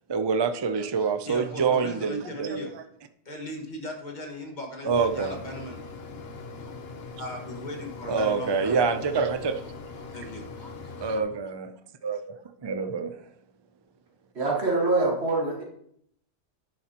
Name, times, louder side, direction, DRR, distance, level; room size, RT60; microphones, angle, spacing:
voice 1, 0.1-2.7 4.8-5.3 8.1-9.6 11.0-11.7 12.0-12.4 12.6-13.1, right 5 dB, 40° right, 9 dB, 0.4 m, -26 dB
voice 2, 0.7-2.7 3.2-5.8 6.6-6.7 7.2-8.8 9.2-9.7 9.9-11.3, left 1 dB, 45° left, 1 dB, 1.8 m, -39 dB
Mechanisms, 4.9-11.2, left 4 dB, 65° left, 1.1 m, -41 dB
voice 3, 14.3-15.6, right 2 dB, 75° right, -2 dB, 1.8 m, -24 dB
10.5 x 7.5 x 2.9 m, 0.70 s
omnidirectional pair, 1.1 m